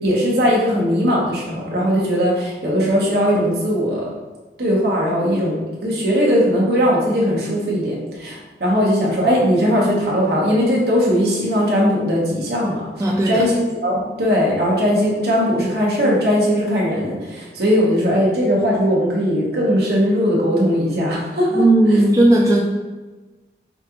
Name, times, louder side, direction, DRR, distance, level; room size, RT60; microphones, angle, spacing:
voice 1, 0.0-4.0 4.6-12.9 13.2-21.6 21.9-22.0, equal, 65° right, -4 dB, 1.1 m, -19 dB
voice 2, 13.0-13.5 21.5-22.6, right 1 dB, 20° right, -2 dB, 0.3 m, -15 dB
5.0 x 2.4 x 2.9 m, 1.2 s
head